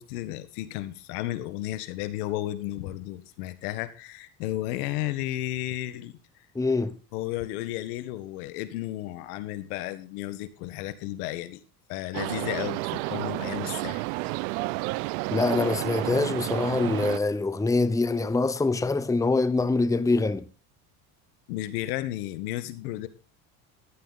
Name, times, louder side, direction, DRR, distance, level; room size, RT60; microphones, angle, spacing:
voice 1, 0.0-6.2 7.1-11.6 11.9-14.3 21.5-23.1, left 15 dB, 85° left, 1.8 m, -33 dB
voice 2, 6.5-7.0 15.3-20.4, left 3 dB, 5° left, 0.9 m, -24 dB
sound 1, 12.1-17.2, right 23 dB, 85° right, 0.6 m, -31 dB
14.5 x 11.0 x 4.2 m
supercardioid pair, 110°, 44 cm